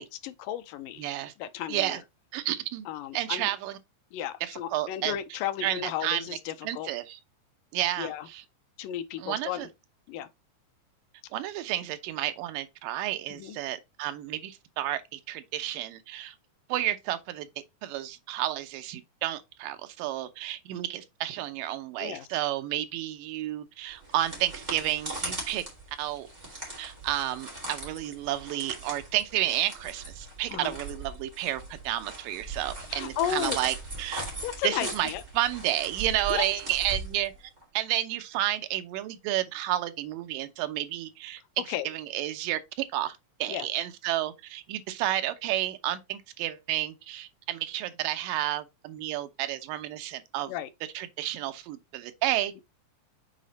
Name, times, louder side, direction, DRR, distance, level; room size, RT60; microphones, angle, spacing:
voice 1, 0.0-1.0 1.4-2.0 2.9-3.5 4.1-6.9 8.0-8.3 8.8-9.7 10.1-10.3 13.3-13.6 22.0-22.3 30.5-30.8 32.9-33.6 34.4-35.2 36.3-36.5 41.7-41.9 43.5-43.7 50.5-50.7, left 11 dB, 85° left, 2.3 m, -34 dB
voice 2, 1.0-1.3 1.7-2.0 2.3-2.9 3.1-3.8 4.4-5.1 5.6-6.3 6.6-7.2 7.7-8.4 9.2-9.7 11.3-16.4 16.7-17.5 17.8-25.6 26.0-26.3 26.8-34.3 34.6-37.3 37.7-41.4 41.7-50.5 50.9-52.5, right 13 dB, 85° right, 2.4 m, -31 dB
sound 1, 23.9-37.6, right 2 dB, 15° right, 2.3 m, -40 dB
6.5 x 4.1 x 4.0 m
omnidirectional pair, 3.9 m